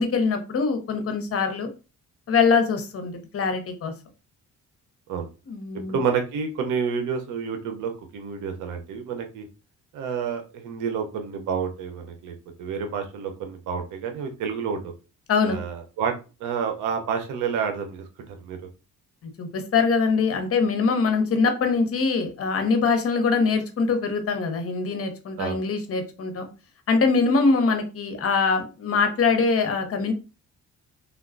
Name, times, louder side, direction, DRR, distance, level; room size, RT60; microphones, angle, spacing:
voice 1, 0.0-1.7 2.3-3.9 5.5-6.0 15.3-15.6 19.4-26.5 26.9-30.1, left 4 dB, 50° left, 6 dB, 0.8 m, -23 dB
voice 2, 5.9-9.4 9.9-14.9 15.4-16.1 16.4-18.1 18.4-18.6 25.4-25.6, right 6 dB, 85° right, 5 dB, 0.7 m, -29 dB
3.4 x 2.2 x 2.4 m, 0.31 s
cardioid pair, 90°, 30 cm